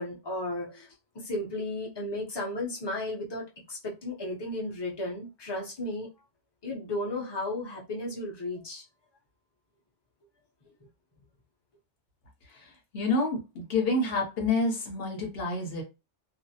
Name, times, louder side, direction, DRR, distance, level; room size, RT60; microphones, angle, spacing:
voice 1, 0.0-6.1 6.6-8.8, left 1 dB, 25° left, 0.6 m, -34 dB
voice 2, 12.9-15.8, left 2 dB, 55° left, 1.0 m, -28 dB
2.4 x 2.0 x 2.7 m
omnidirectional pair, 1.2 m